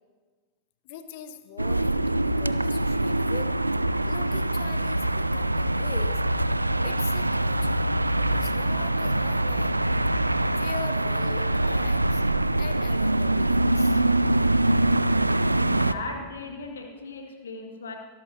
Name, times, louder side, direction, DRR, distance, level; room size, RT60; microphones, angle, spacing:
voice 1, 0.8-3.5 4.0-6.2 6.8-7.8 8.2-9.8 10.5-12.2 12.6-14.1 14.5-14.6, left 9 dB, 50° left, 11 dB, 1.0 m, -42 dB
sound 1, 1.6-15.9, right 1 dB, 85° right, 0.3 m, -24 dB
voice 2, 15.6-18.0, left 2 dB, 65° left, 2 dB, 2.1 m, -36 dB
24.0 x 13.0 x 2.9 m, 1.4 s
figure-of-eight pair, 90°, 0 cm